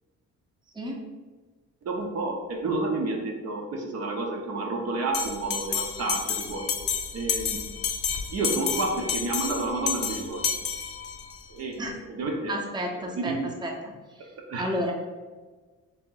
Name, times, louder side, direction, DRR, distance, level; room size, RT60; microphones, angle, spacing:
voice 1, 1.9-6.7 7.1-7.6 8.3-10.5 11.5-12.5 13.0-13.4 14.4-14.8, right 2 dB, 55° right, 1 dB, 0.7 m, -30 dB
Bell, 5.1-11.4, left 6 dB, 50° left, 0.5 m, -30 dB
voice 2, 12.5-13.3 13.6-13.9 14.6-14.9, equal, 15° right, 0 dB, 0.7 m, -31 dB
3.4 x 2.9 x 3.8 m, 1.3 s
cardioid pair, 90°, 30 cm